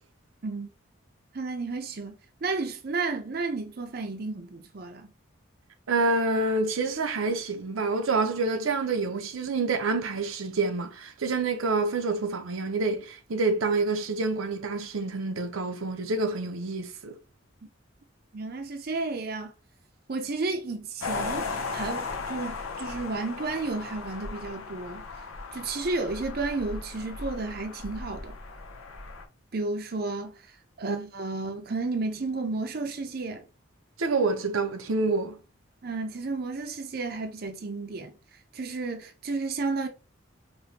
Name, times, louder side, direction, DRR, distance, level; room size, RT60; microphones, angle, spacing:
voice 1, 1.3-2.1 2.4-5.1 18.3-19.5 20.1-28.4 29.5-33.4 35.8-38.1 38.5-39.9, right 3 dB, 45° right, 0.5 m, -32 dB
voice 2, 5.9-17.2 30.8-31.1 34.0-35.4, right 3 dB, 85° right, 0.6 m, -27 dB
sound 1, 21.0-29.2, left 4 dB, 90° left, 0.7 m, -36 dB
5.0 x 2.2 x 2.8 m
head